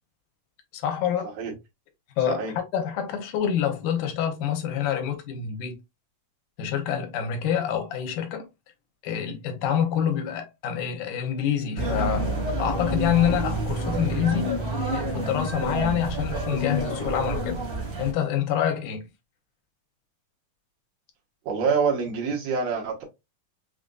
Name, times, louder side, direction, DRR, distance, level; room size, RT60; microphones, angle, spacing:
voice 1, 0.7-1.3 2.2-2.4 2.7-5.7 6.6-8.5 9.0-12.3 12.6-14.5 14.9-17.6 18.0-19.1, left 9 dB, 80° left, 2.3 m, -27 dB
sound 1, 11.8-18.1, right 1 dB, 40° right, 1.6 m, -28 dB
voice 2, 21.5-23.0, right 5 dB, 75° right, 2.6 m, -26 dB
5.7 x 2.5 x 2.3 m
omnidirectional pair, 3.6 m